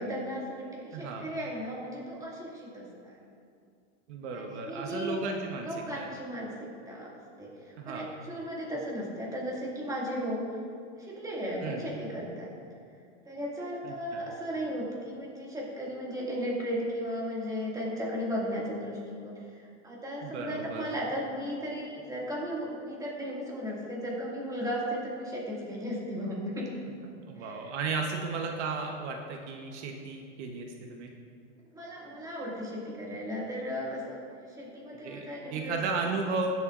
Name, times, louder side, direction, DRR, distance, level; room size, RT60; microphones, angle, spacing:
voice 1, 0.0-3.2 4.3-5.1 5.6-7.1 7.4-10.5 10.9-12.5 13.3-19.4 19.8-26.7 27.4-27.7 31.7-35.8, equal, 10° right, -4 dB, 2.1 m, -35 dB
voice 2, 0.9-1.3 4.1-5.7 6.0-6.1 7.8-8.1 11.6-11.9 13.8-14.2 20.2-20.8 27.3-31.1 35.0-36.5, right 4 dB, 65° right, 2 dB, 1.1 m, -34 dB
17.0 x 7.9 x 2.5 m, 2.3 s
supercardioid pair, 140°, 36 cm